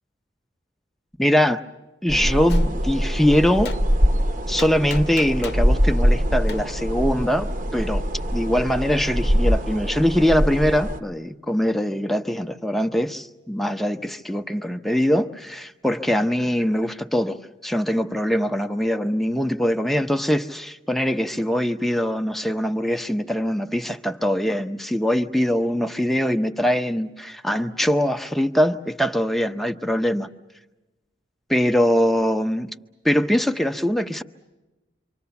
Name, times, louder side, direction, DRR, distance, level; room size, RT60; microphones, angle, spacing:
voice 1, 1.2-1.6 2.0-3.8 4.5-8.0 8.3-30.3 31.5-32.7 33.0-34.2, equal, ahead, 0.8 m, -22 dB
sound 1, 2.1-11.0, equal, 50° right, 0.9 m, -23 dB
Gunshot gunfire, 2.5-2.7 3.7-3.8 4.6-5.7 6.5-6.6, left 5 dB, 65° left, 0.9 m, -35 dB
27.5 x 25.0 x 7.1 m
head